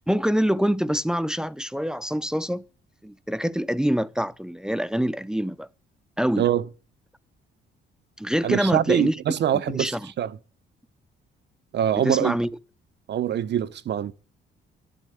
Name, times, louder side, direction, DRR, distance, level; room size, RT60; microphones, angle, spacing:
voice 1, 0.1-2.6 3.0-5.7 6.2-6.5 8.2-9.2 9.7-10.1 12.0-12.5, equal, 5° right, 0.6 m, -25 dB
voice 2, 8.4-10.4 11.7-12.3 13.1-14.1, right 10 dB, 60° right, 0.9 m, -24 dB
11.5 x 11.5 x 8.9 m
cardioid pair, 90°, 20 cm